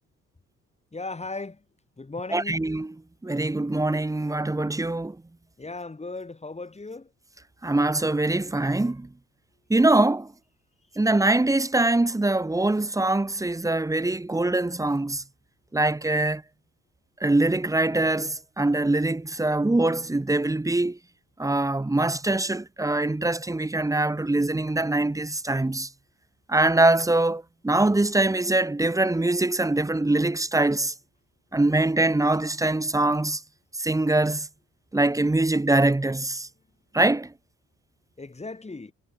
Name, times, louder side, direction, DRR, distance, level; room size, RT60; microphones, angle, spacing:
voice 1, 0.9-1.6 2.0-2.7 5.6-7.1 38.2-38.9, left 3 dB, 20° left, 6.3 m, -37 dB
voice 2, 2.3-2.9 3.2-5.2 7.6-9.1 9.7-10.3 11.0-15.2 15.7-16.4 17.2-21.0 21.4-25.9 26.5-30.9 31.5-33.4 33.8-34.5 34.9-36.5 36.9-37.3, right 2 dB, 10° right, 1.0 m, -23 dB
cardioid pair, 90°, 30 cm